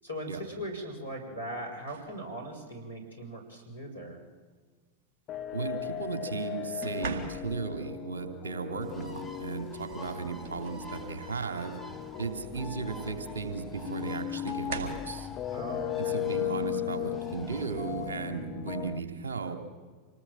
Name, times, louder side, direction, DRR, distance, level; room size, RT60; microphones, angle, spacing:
voice 1, 0.0-4.2 15.5-16.2, right 1 dB, 85° left, 2 dB, 6.4 m, -39 dB
sound 1, 1.9-2.2 3.5-3.7 6.8-7.8 9.5-9.6 10.1-11.2 11.7-11.9 13.3-13.4 14.5-15.2 16.9-17.1 17.6-17.9, right 5 dB, 50° right, 3.9 m, -40 dB
sound 2, 5.3-19.0, left 13 dB, 35° left, 1.2 m, -37 dB
voice 2, 5.5-11.7 12.2-15.3 16.0-19.6, right 5 dB, 65° right, 5 dB, 3.0 m, -35 dB
Bird, 8.8-18.1, left 1 dB, ahead, 2.8 m, -49 dB
27.0 x 19.5 x 7.5 m, 1.5 s
figure-of-eight pair, 90°, 0 cm